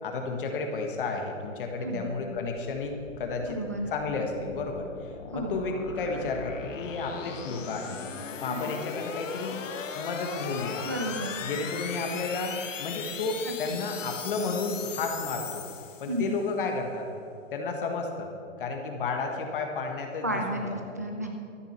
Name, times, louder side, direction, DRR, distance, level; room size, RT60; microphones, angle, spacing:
voice 1, 0.0-3.6 3.9-8.0 8.4-9.6 9.9-10.9 11.4-15.6 16.0-17.1 17.5-18.3 18.6-20.7, left 3 dB, 45° left, 3 dB, 1.5 m, -32 dB
sound 1, 2.6-16.4, left 6 dB, 75° left, 1.4 m, -39 dB
voice 2, 3.5-3.9 5.3-5.6 8.5-8.7 10.8-11.4 13.5-13.8 16.1-16.4 20.2-21.3, right 1 dB, 15° right, 3 dB, 0.4 m, -32 dB
13.0 x 8.7 x 6.6 m, 2.5 s
hypercardioid pair, 165°, 38 cm